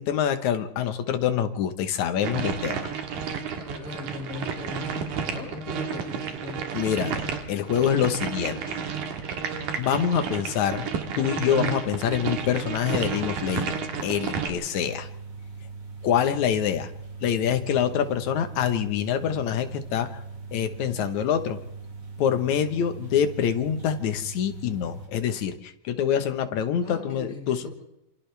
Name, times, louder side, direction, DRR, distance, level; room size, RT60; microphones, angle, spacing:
voice 1, 0.0-2.9 6.7-8.8 9.8-10.9 11.2-15.1 16.0-16.9 17.2-20.2 20.5-21.6 22.2-27.7, left 9 dB, 70° left, 9 dB, 2.6 m, -26 dB
sound 1, 2.2-14.5, right 6 dB, 90° right, 3.3 m, -31 dB
voice 2, 3.6-6.8 26.8-27.7, left 2 dB, 50° left, -3 dB, 7.0 m, -38 dB
sound 2, 14.7-25.1, right 4 dB, 30° right, 4.9 m, -40 dB
28.5 x 27.0 x 3.4 m, 0.85 s
omnidirectional pair, 3.5 m